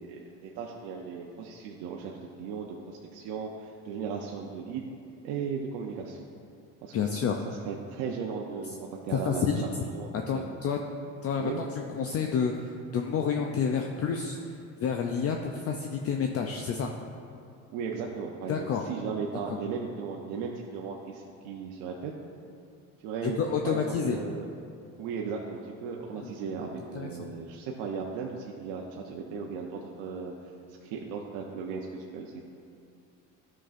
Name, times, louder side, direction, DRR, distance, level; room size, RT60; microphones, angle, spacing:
voice 1, 0.0-4.8 5.2-6.2 6.8-7.2 7.5-9.5 9.8-10.5 11.4-11.6 17.7-22.1 23.0-24.4 25.0-30.3 30.8-32.4, right 5 dB, 75° right, -1 dB, 0.7 m, -36 dB
voice 2, 6.9-7.4 9.1-9.6 10.1-10.8 11.2-11.5 11.8-14.4 14.8-16.9 18.5-18.8 19.5-19.6 23.2-24.2 26.2-26.3 26.9-27.1, left 6 dB, 40° left, 3 dB, 0.5 m, -29 dB
11.5 x 6.0 x 2.5 m, 2.5 s
supercardioid pair, 100°, 37 cm